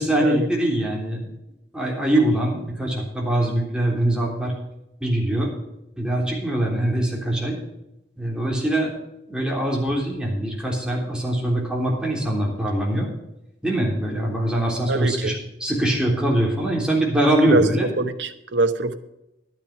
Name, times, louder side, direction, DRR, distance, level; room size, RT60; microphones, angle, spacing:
voice 1, 0.0-1.4 1.7-4.5 5.0-5.5 6.0-7.6 8.2-8.9 9.3-13.1 13.6-15.3 15.6-17.9, right 1 dB, 5° right, 3.5 m, -22 dB
voice 2, 14.9-15.4 17.5-17.6 18.0-19.0, right 3 dB, 85° right, 1.1 m, -23 dB
12.0 x 9.3 x 5.9 m
head